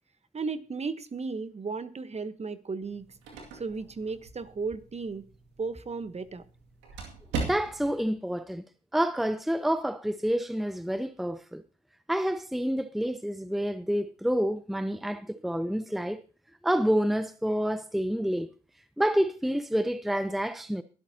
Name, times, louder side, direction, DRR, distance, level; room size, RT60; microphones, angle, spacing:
voice 1, 0.3-3.0 3.5-5.2 5.6-6.4, right 4 dB, 40° right, 1.2 m, -35 dB
sound 1, 2.8-8.1, right 4 dB, 90° right, 2.3 m, -40 dB
voice 2, 7.3-8.6 8.9-11.6 12.1-16.2 16.6-18.5 19.0-20.8, equal, ahead, 0.7 m, -28 dB
22.5 x 8.4 x 2.9 m
hypercardioid pair, 45°, 17 cm